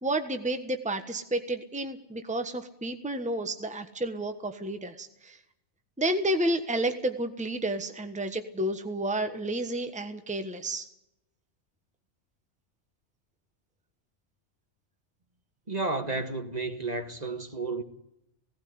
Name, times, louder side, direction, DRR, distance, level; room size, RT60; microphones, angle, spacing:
voice 1, 0.0-5.4 6.0-10.9, right 1 dB, 5° right, 1.3 m, -31 dB
voice 2, 15.7-17.8, right 3 dB, 35° right, 1.6 m, -32 dB
17.5 x 16.5 x 9.6 m
omnidirectional pair, 1.2 m